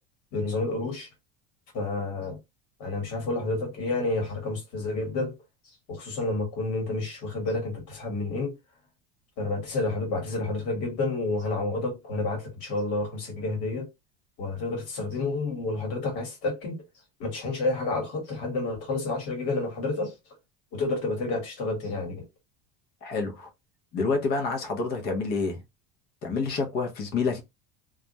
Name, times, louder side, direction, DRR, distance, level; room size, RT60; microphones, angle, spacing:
voice 1, 0.3-1.1 1.7-2.4 2.8-5.3 5.9-8.5 9.4-13.9 14.4-16.8 17.2-20.1 20.7-22.2, left 2 dB, 50° left, 1.2 m, -29 dB
voice 2, 23.0-23.5 23.9-25.6 26.2-27.4, left 4 dB, 30° left, 0.5 m, -28 dB
2.2 x 2.0 x 2.7 m
cardioid pair, 170°, 31 cm